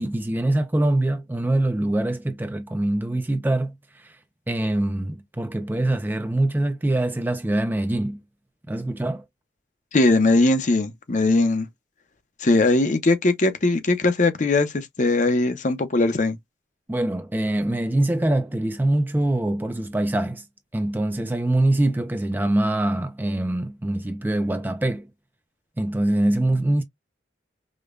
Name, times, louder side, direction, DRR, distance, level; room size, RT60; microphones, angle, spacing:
voice 1, 0.0-4.2 4.5-8.2 8.7-9.2 16.9-20.4 20.7-25.1 25.8-26.8, right 1 dB, 10° right, 0.3 m, -24 dB
voice 2, 9.9-11.7 12.4-16.4, left 2 dB, 40° left, 0.6 m, -20 dB
5.0 x 2.1 x 2.4 m
head